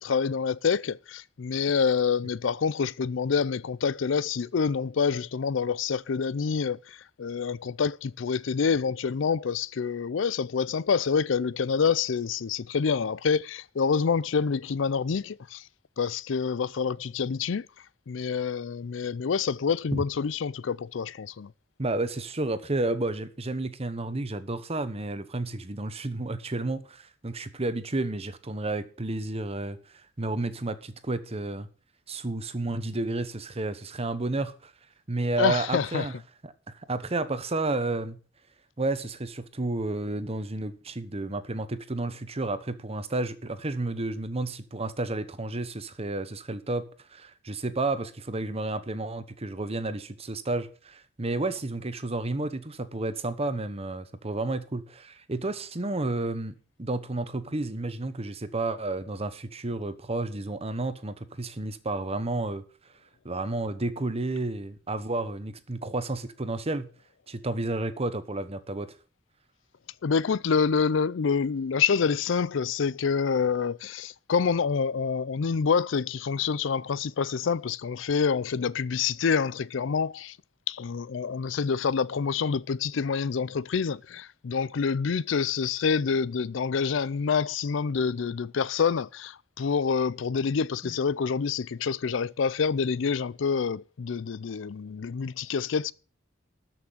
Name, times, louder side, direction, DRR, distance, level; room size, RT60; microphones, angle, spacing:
voice 1, 0.0-15.6 16.0-17.7 18.1-21.5 35.4-36.1 70.0-80.4 80.7-95.9, left 6 dB, 70° left, 0.5 m, -27 dB
voice 2, 21.8-29.8 30.2-31.7 32.1-34.7 35.1-36.1 36.4-36.5 36.9-38.2 38.8-46.8 47.1-56.5 56.8-62.6 63.2-66.9 67.3-68.9 90.8-90.9, right 2 dB, 30° right, 1.1 m, -31 dB
13.0 x 6.0 x 7.3 m
head